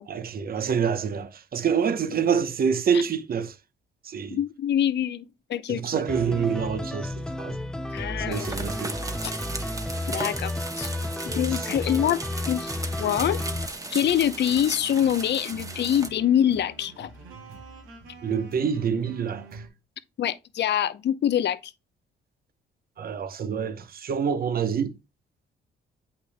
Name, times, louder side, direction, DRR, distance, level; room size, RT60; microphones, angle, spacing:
voice 1, 0.1-3.5 4.0-4.4 5.7-7.6 8.2-8.9 11.6-11.7 18.2-19.6 23.0-25.0, right 7 dB, 50° right, 0.9 m, -27 dB
voice 2, 4.3-6.0 7.9-8.7 9.2-9.3 10.1-10.9 11.2-12.2 12.5-12.7 13.0-13.4 13.9-17.1 20.2-21.6, left 10 dB, 60° left, 0.7 m, -25 dB
sound 1, 6.1-13.7, left 1 dB, 5° left, 0.4 m, -32 dB
sound 2, 8.3-16.1, right 2 dB, 15° right, 1.1 m, -36 dB
sound 3, 12.6-19.7, right 3 dB, 90° right, 2.8 m, -46 dB
8.2 x 5.7 x 2.2 m
cardioid pair, 90°, 20 cm